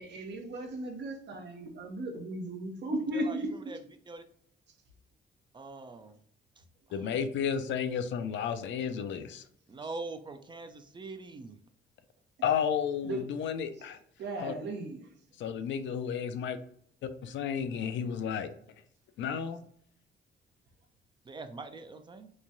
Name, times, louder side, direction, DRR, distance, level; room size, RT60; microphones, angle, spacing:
voice 1, 0.0-3.5 13.0-13.2 14.2-15.1, right 2 dB, 60° right, 0.7 m, -36 dB
voice 2, 5.5-6.2 6.9-7.1 9.7-11.6 21.3-22.3, right 3 dB, 25° right, 0.4 m, -43 dB
voice 3, 6.9-9.4 12.4-14.0 14.4-14.5 15.4-16.6 17.2-18.5 19.2-19.6, left 7 dB, 70° left, 0.4 m, -32 dB
3.0 x 2.2 x 2.5 m
cardioid pair, 90°, 20 cm